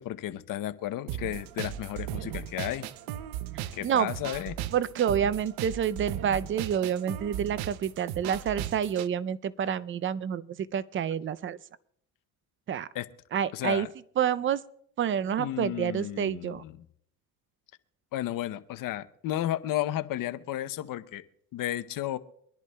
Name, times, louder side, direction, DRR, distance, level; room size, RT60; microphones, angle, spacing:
voice 1, 0.0-2.9 3.7-4.6 12.9-13.1 13.5-13.9 15.4-16.7 18.1-21.2 21.5-22.2, left 13 dB, 55° left, 13 dB, 0.8 m, -33 dB
sound 1, 1.1-9.1, right 12 dB, 75° right, 0.7 m, -37 dB
voice 2, 3.5-4.1 4.7-11.6 12.7-12.9 13.3-13.9 14.2-14.6 15.0-16.6, right 8 dB, 30° right, 17 dB, 0.5 m, -28 dB
24.5 x 10.5 x 2.3 m, 0.69 s
supercardioid pair, 85°, 39 cm